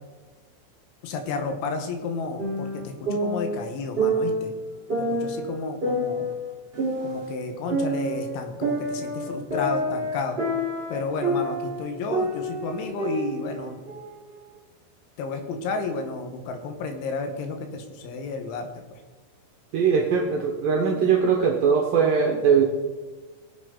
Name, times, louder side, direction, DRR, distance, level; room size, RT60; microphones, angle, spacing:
voice 1, 1.0-4.5 5.1-6.3 7.0-10.4 10.9-13.8 15.2-19.0, left 4 dB, 80° left, 5 dB, 3.6 m, -32 dB
sound 1, 2.4-4.5 4.9-7.3 7.7-11.8 12.1-14.1, right 1 dB, 15° right, 3.3 m, -27 dB
voice 2, 19.7-22.6, right 6 dB, 75° right, 0 dB, 2.2 m, -21 dB
21.5 x 7.7 x 3.8 m, 1.3 s
omnidirectional pair, 5.5 m